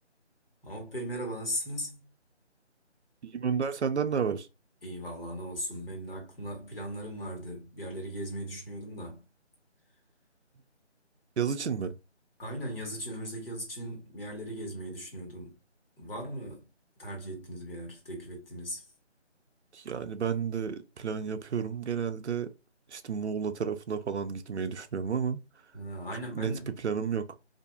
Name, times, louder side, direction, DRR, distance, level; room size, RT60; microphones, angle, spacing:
voice 1, 0.6-2.1 4.8-9.3 12.4-15.6 16.0-16.7 17.0-18.9 25.7-26.7, equal, 55° left, 1.3 m, -38 dB
voice 2, 3.2-4.5 11.4-11.9 19.7-22.5 22.9-25.4 26.4-26.5 26.8-27.3, right 6 dB, 70° right, 0.5 m, -31 dB
2.6 x 2.5 x 2.3 m
figure-of-eight pair, 165°, 35 cm